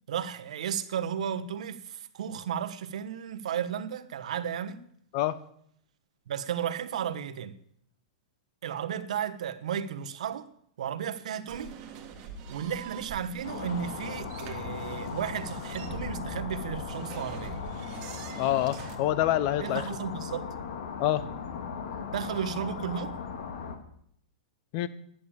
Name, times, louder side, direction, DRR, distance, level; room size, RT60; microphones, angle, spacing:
voice 1, 0.1-4.8 6.3-7.6 8.6-10.5 10.8-11.8 12.5-17.6 19.6-20.5 22.1-23.1, right 8 dB, 75° right, 1.1 m, -34 dB
sound 1, 11.5-19.0, right 5 dB, 30° right, 1.9 m, -43 dB
sound 2, 13.4-23.8, left 6 dB, 65° left, 2.2 m, -38 dB
voice 2, 18.4-19.9 21.0-21.3 24.7-24.9, left 13 dB, 40° left, 0.8 m, -26 dB
11.0 x 8.7 x 8.8 m
supercardioid pair, 160°, 4 cm